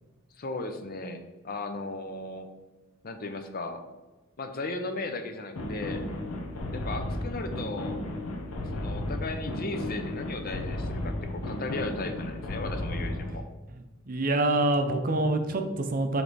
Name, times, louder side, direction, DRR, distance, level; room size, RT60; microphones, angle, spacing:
voice 1, 0.4-2.5 3.0-3.9 4.4-6.1 6.7-8.0 8.7-13.4, left 2 dB, 45° left, 7 dB, 0.6 m, -36 dB
sound 1, 5.5-13.4, left 1 dB, 85° left, 1.0 m, -34 dB
voice 2, 14.1-16.2, right 2 dB, 40° right, 5 dB, 0.6 m, -26 dB
7.5 x 3.3 x 4.1 m, 1.2 s
head